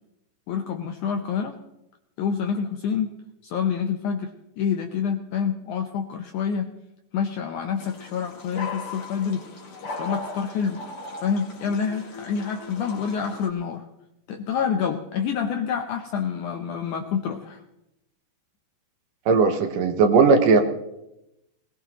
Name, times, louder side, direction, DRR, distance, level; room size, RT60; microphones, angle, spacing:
voice 1, 0.5-1.6 2.2-3.2 3.4-4.3 4.6-6.7 7.1-9.4 9.9-10.8 11.2-13.8 14.3-17.6, left 7 dB, 75° left, 5 dB, 1.8 m, -27 dB
sound 1, 7.8-13.5, left 3 dB, 45° left, 2.3 m, -38 dB
voice 2, 19.3-20.6, right 4 dB, 70° right, 6 dB, 2.4 m, -17 dB
20.5 x 18.0 x 3.0 m, 0.88 s
omnidirectional pair, 4.4 m